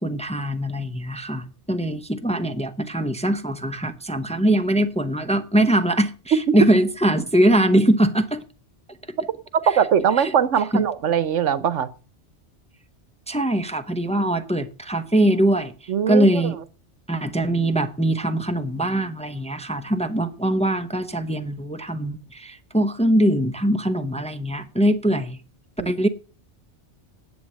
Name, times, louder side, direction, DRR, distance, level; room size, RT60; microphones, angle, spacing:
voice 1, 0.0-8.4 10.2-10.3 10.7-10.8 13.3-15.7 16.1-16.6 17.1-25.4 25.8-26.1, right 1 dB, 5° left, 0.8 m, -22 dB
voice 2, 9.7-11.9 15.9-16.3 25.8-25.9, right 8 dB, 80° right, 1.2 m, -21 dB
11.0 x 8.0 x 7.3 m
omnidirectional pair, 1.2 m